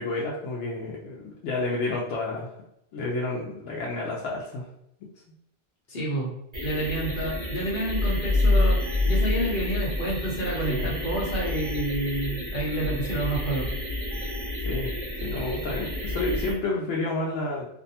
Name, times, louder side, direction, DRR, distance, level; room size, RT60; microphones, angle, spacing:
voice 1, 0.0-2.5 2.9-4.7 10.7-10.9 14.6-14.9 15.2-17.7, left 2 dB, 80° left, -4 dB, 0.9 m, -30 dB
voice 2, 5.9-6.3 6.6-8.8 9.1-13.7, right 1 dB, 50° left, -3 dB, 0.9 m, -29 dB
sound 1, 6.5-16.5, left 1 dB, 35° right, 0.5 m, -32 dB
sound 2, 7.9-10.7, left 2 dB, 65° right, 0.9 m, -24 dB
2.6 x 2.1 x 2.7 m, 0.77 s
omnidirectional pair, 1.2 m